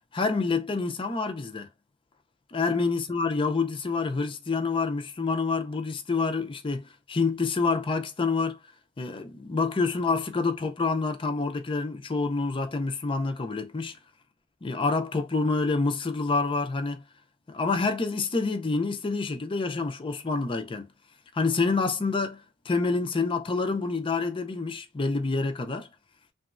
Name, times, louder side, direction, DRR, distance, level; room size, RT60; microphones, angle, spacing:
voice 1, 0.1-1.7 2.5-8.6 9.0-14.0 14.6-17.0 17.5-20.9 21.3-25.9, left 4 dB, 25° left, 0.4 m, -27 dB
2.9 x 2.2 x 2.4 m
head